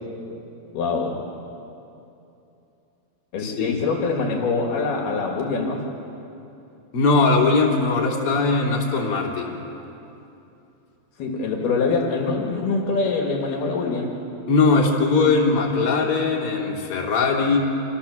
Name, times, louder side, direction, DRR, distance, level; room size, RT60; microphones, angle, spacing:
voice 1, 0.7-1.3 3.3-5.8 11.2-14.2, left 4 dB, 65° left, 0 dB, 4.0 m, -24 dB
voice 2, 3.4-3.9 6.9-9.6 14.5-17.6, left 4 dB, 35° left, -2 dB, 3.7 m, -20 dB
27.0 x 27.0 x 7.3 m, 2.8 s
omnidirectional pair, 5.0 m